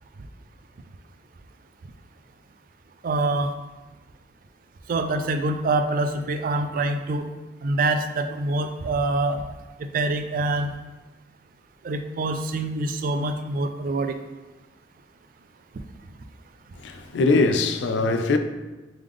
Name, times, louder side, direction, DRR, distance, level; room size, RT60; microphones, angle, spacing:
voice 1, 3.0-3.5 4.9-7.3 7.6-9.4 9.8-10.7 11.8-14.2, right 2 dB, 50° right, 0.3 m, -25 dB
voice 2, 16.8-18.4, left 3 dB, 90° left, 0.4 m, -21 dB
3.7 x 3.3 x 3.3 m
head